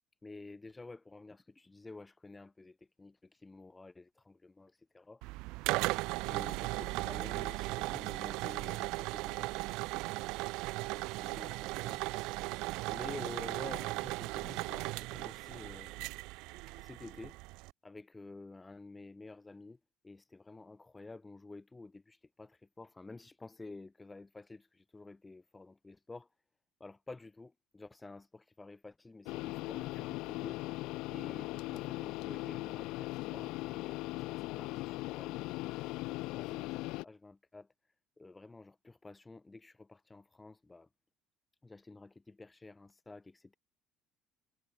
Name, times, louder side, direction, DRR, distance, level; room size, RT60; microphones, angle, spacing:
voice 1, 0.2-5.6 6.3-10.2 10.8-12.0 12.3-16.1 16.8-17.4 17.8-26.3 26.8-30.8 31.1-35.6 36.1-37.7 38.2-40.9 41.6-43.6, left 3 dB, 15° left, 2.4 m, -51 dB
sound 1, 5.2-17.7, right 23 dB, 80° right, 0.3 m, -37 dB
sound 2, 29.3-37.0, left 20 dB, 75° left, 0.4 m, -39 dB
cardioid pair, 110°, 0 cm